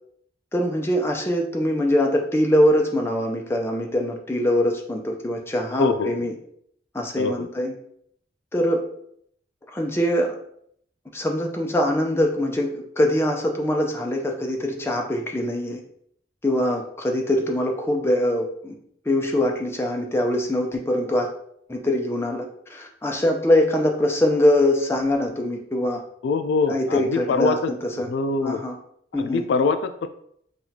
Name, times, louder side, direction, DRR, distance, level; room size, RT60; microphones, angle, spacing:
voice 1, 0.5-6.3 6.9-7.7 8.5-8.8 9.7-10.3 11.1-15.8 16.4-18.7 19.1-21.3 21.7-26.0 26.7-28.1 28.4-28.7 29.1-29.4, left 1 dB, 15° left, 1 dB, 0.5 m, -23 dB
voice 2, 5.8-6.1 7.2-7.5 26.2-28.6 29.2-30.1, left 4 dB, 75° left, 9 dB, 0.3 m, -24 dB
6.1 x 2.4 x 2.7 m, 0.68 s
head